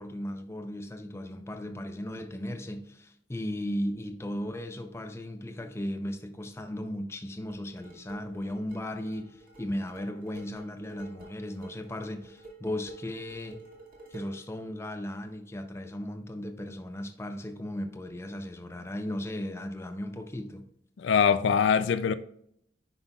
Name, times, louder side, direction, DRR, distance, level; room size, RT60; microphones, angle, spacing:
voice 1, 0.0-13.6 14.1-20.7, left 1 dB, 15° left, 0.5 m, -36 dB
sound 1, 7.5-14.5, right 2 dB, 50° right, 2.1 m, -50 dB
voice 2, 21.0-22.1, left 7 dB, 75° left, 0.4 m, -23 dB
9.7 x 5.5 x 2.3 m
head